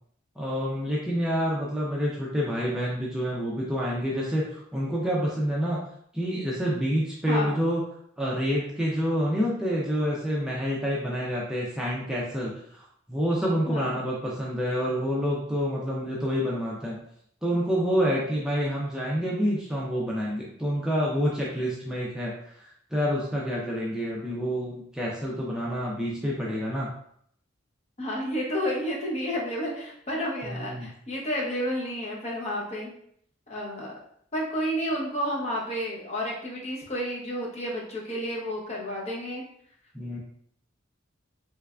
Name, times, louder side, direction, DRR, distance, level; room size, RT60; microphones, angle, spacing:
voice 1, 0.4-5.8 6.1-7.8 8.2-17.0 17.4-26.9 30.4-30.9 39.9-40.2, equal, 5° right, -5 dB, 0.5 m, -28 dB
voice 2, 7.3-7.6 13.7-14.0 28.0-32.9 33.5-34.0 34.3-39.4, equal, 35° left, -3 dB, 0.8 m, -31 dB
3.3 x 3.2 x 2.4 m, 0.67 s
head